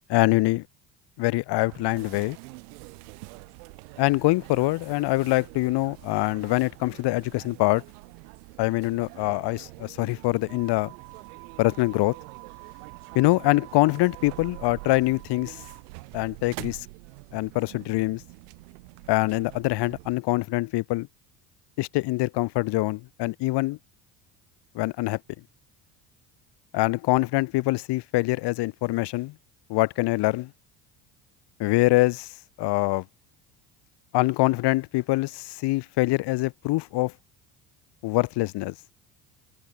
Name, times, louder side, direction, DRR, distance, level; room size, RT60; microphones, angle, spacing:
voice 1, 0.1-0.6 1.2-2.4 4.0-7.8 8.6-10.9 11.6-12.1 13.1-15.5 16.1-16.8 17.3-18.2 19.1-21.1 21.8-23.8 24.7-25.2 26.7-29.3 29.7-30.5 31.6-32.3 32.6-33.0 34.1-37.1 38.0-38.7, left 20 dB, 60° left, 1.4 m, -24 dB
sound 1, 1.6-20.2, right 29 dB, 80° right, 1.7 m, -45 dB
hypercardioid pair, 80°, 45 cm